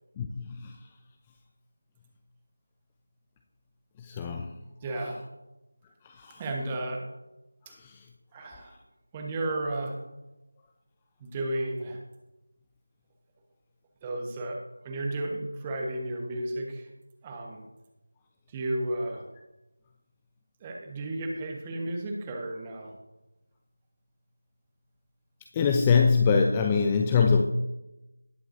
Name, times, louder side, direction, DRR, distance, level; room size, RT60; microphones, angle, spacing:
voice 1, 0.2-0.7 4.0-4.5 4.9-5.0 6.0-6.4 7.7-8.0 25.5-27.4, left 5 dB, 15° left, 3 dB, 0.4 m, -24 dB
voice 2, 4.8-5.2 6.4-7.0 8.3-8.7 9.1-10.0 11.2-12.0 14.0-14.6 14.8-16.9 17.2-17.6 18.5-19.3 20.6-22.9, right 1 dB, 15° right, 1 dB, 1.2 m, -33 dB
19.0 x 7.6 x 2.7 m, 0.99 s
figure-of-eight pair, 165°, 0 cm